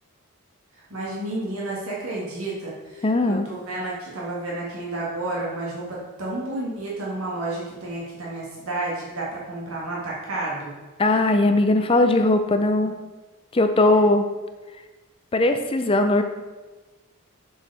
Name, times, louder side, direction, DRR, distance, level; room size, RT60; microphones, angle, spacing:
voice 1, 0.9-10.7, right 2 dB, 75° right, -5 dB, 1.9 m, -31 dB
voice 2, 3.0-3.5 11.0-13.0 13.5-14.3 15.3-16.2, left 2 dB, 25° left, 7 dB, 0.5 m, -19 dB
7.1 x 4.8 x 5.5 m, 1.2 s
head